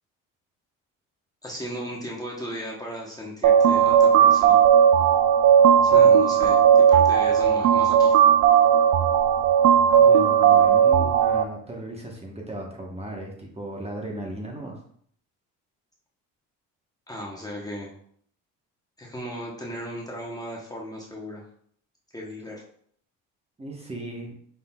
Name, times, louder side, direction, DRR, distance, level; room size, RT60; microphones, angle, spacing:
voice 1, 1.4-4.6 5.8-8.1 17.1-17.9 19.0-21.5 22.1-22.6, equal, 10° left, -3 dB, 1.0 m, -36 dB
sound 1, 3.4-11.4, right 8 dB, 55° right, 0.4 m, -17 dB
voice 2, 9.9-14.8 23.6-24.4, right 1 dB, 20° right, 0 dB, 1.1 m, -36 dB
5.5 x 3.7 x 2.3 m, 0.62 s
cardioid pair, 90°, 34 cm